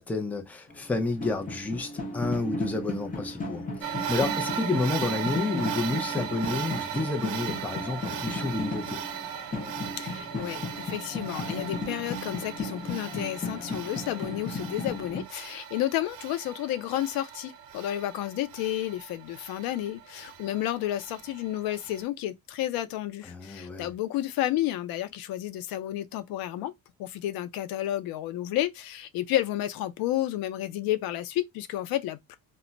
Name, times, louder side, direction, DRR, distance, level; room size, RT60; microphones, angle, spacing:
voice 1, 0.0-9.0 23.3-23.9, left 3 dB, 5° left, 0.4 m, -30 dB
sound 1, 0.7-15.2, left 2 dB, 25° left, 0.8 m, -36 dB
sound 2, 3.8-22.0, right 9 dB, 85° right, 0.6 m, -38 dB
voice 2, 10.0-26.7 27.0-32.4, left 13 dB, 85° left, 0.6 m, -31 dB
2.2 x 2.1 x 3.8 m
cardioid pair, 125°, 35 cm